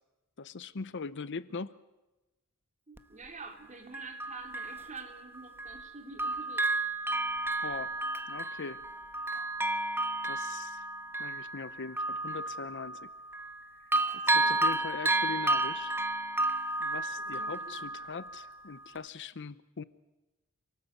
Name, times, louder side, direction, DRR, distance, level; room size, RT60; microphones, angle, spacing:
voice 1, 0.4-1.8 7.6-7.9 8.3-8.8 10.2-10.8 11.2-13.1 14.2-15.9 16.8-19.8, left 5 dB, 55° left, 16 dB, 0.7 m, -41 dB
voice 2, 2.9-6.7 14.3-14.8 17.2-18.0, right 3 dB, 35° right, 4 dB, 3.5 m, -48 dB
Bell, 3.0-3.1 3.9-5.9 6.2-13.6 13.9-18.5 19.0-19.1, right 2 dB, 10° right, 1.0 m, -32 dB
27.0 x 18.0 x 8.3 m, 1.1 s
head